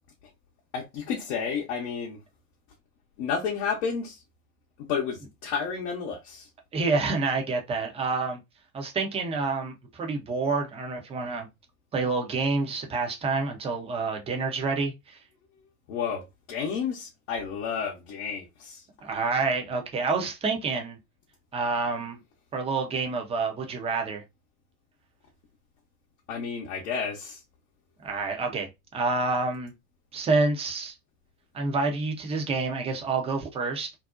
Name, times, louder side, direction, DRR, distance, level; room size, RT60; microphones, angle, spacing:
voice 1, 0.7-2.2 3.2-4.2 4.9-6.5 15.9-16.2 16.5-18.9 26.3-27.4, left 6 dB, 55° left, 0.7 m, -31 dB
voice 2, 6.7-8.4 8.7-11.5 11.9-15.2 19.0-21.0 21.5-22.2 22.5-24.2 28.0-29.7 30.1-30.9 31.5-33.9, right 3 dB, 15° right, 0.5 m, -28 dB
2.6 x 2.0 x 2.3 m
figure-of-eight pair, 70°, 45 cm